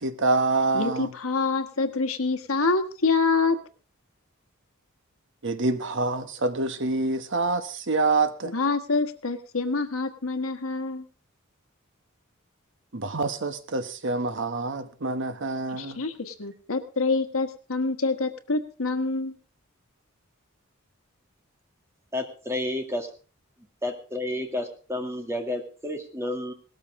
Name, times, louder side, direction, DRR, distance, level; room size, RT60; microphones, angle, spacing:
voice 1, 0.0-1.1 5.4-8.5 12.9-16.0, right 3 dB, 60° right, 10 dB, 1.2 m, -26 dB
voice 2, 0.7-3.6 8.4-11.0 15.7-19.3, left 3 dB, 85° left, 8 dB, 1.4 m, -26 dB
voice 3, 22.1-23.1 23.8-26.5, left 1 dB, 15° right, 4 dB, 2.1 m, -31 dB
18.5 x 13.5 x 3.7 m, 0.37 s
head